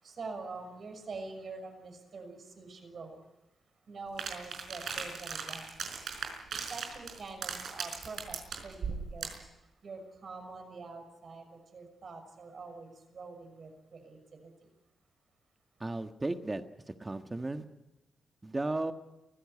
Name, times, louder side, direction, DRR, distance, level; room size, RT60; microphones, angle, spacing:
voice 1, 0.0-3.2 3.9-5.7 6.7-8.4 8.6-9.3 9.8-14.5, right 3 dB, 55° right, 6 dB, 6.3 m, -45 dB
sound 1, 4.2-9.5, right 5 dB, 70° right, 4.7 m, -39 dB
voice 2, 15.8-16.6 17.0-17.6 18.4-18.9, right 2 dB, 25° right, 7 dB, 1.5 m, -34 dB
23.5 x 16.0 x 9.8 m, 0.96 s
cardioid pair, 70°, 0 cm